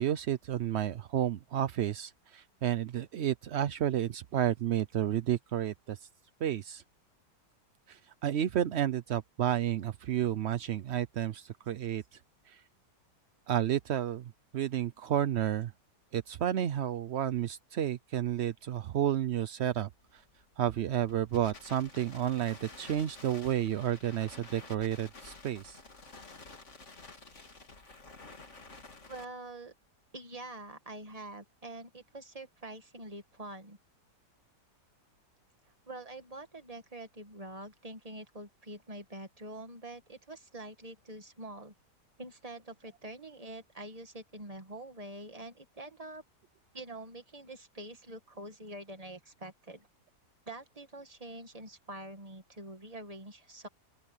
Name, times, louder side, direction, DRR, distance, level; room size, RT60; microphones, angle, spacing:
voice 1, 0.0-6.1 6.4-6.8 7.9-12.0 12.5-12.6 13.5-15.7 16.1-20.2 20.6-25.8, right 11 dB, 65° right, 0.6 m, -31 dB
Crackle, 20.0-29.2, left 3 dB, 45° left, 2.9 m, -51 dB
voice 2, 29.1-29.7 30.1-33.8 35.7-41.7 42.2-46.2 46.7-49.9 50.5-53.7, right 1 dB, 20° right, 1.9 m, -45 dB
open air
omnidirectional pair, 1.8 m